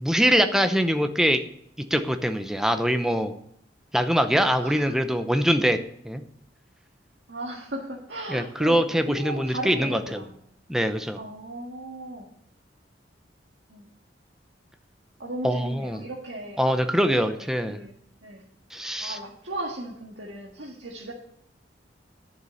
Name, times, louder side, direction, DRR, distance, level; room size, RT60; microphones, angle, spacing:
voice 1, 0.0-1.4 1.9-3.3 3.9-5.8 6.0-6.2 8.3-10.2 10.7-11.2 15.4-16.0 16.6-17.8 18.7-19.2, equal, 5° right, 8 dB, 0.7 m, -23 dB
voice 2, 4.6-5.0 7.3-8.8 9.1-10.3 11.2-12.3 13.7-13.9 15.2-16.6 17.1-17.3 17.6-18.4 19.0-21.1, right 1 dB, 85° right, -4 dB, 1.8 m, -36 dB
10.5 x 6.8 x 6.4 m, 0.70 s
head